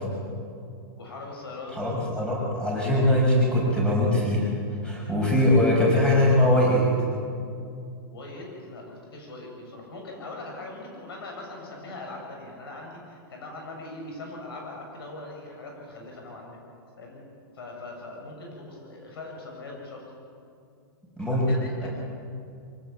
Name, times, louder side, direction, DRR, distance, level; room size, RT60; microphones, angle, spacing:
voice 1, 1.0-1.8 8.1-16.6 17.0-17.2 17.5-20.0 21.3-21.9, left 2 dB, 80° left, 0 dB, 7.1 m, -41 dB
voice 2, 1.7-4.5 4.8-6.8 21.2-21.4 21.8-21.9, left 1 dB, 5° left, -3 dB, 5.9 m, -21 dB
24.5 x 17.5 x 7.2 m, 2.4 s
hypercardioid pair, 155°, 12 cm